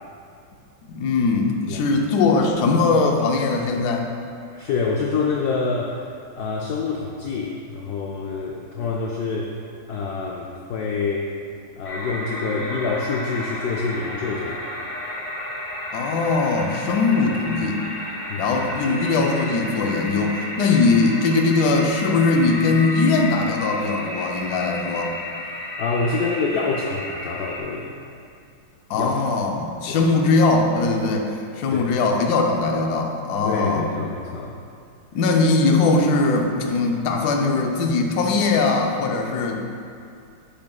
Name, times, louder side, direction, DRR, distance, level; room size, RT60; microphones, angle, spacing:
voice 1, 0.9-4.1 15.9-17.8 18.4-25.1 28.9-33.9 35.1-39.6, left 3 dB, 65° left, 2 dB, 1.0 m, -20 dB
voice 2, 4.5-6.1 6.4-9.6 9.9-11.3 11.8-14.7 18.3-18.7 25.4-27.9 28.9-29.3 29.9-30.1 31.7-32.0 33.4-34.6, left 4 dB, 85° left, -1 dB, 0.8 m, -27 dB
sound 1, 11.8-27.6, left 1 dB, 40° left, 0.8 m, -32 dB
7.6 x 7.0 x 2.3 m, 2.4 s
omnidirectional pair, 2.2 m